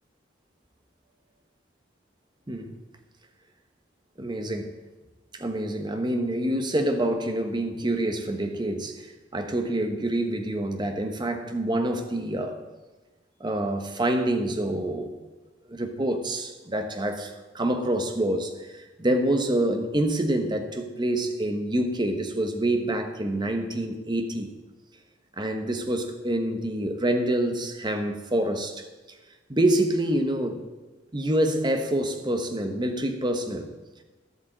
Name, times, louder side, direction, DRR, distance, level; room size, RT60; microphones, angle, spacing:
voice 1, 4.2-4.7 5.3-9.1 9.3-12.6 13.4-15.1 15.7-24.5 25.4-28.8 29.5-30.6 31.1-33.7, right 1 dB, 25° right, 6 dB, 1.2 m, -27 dB
11.5 x 8.3 x 7.5 m, 1.2 s
head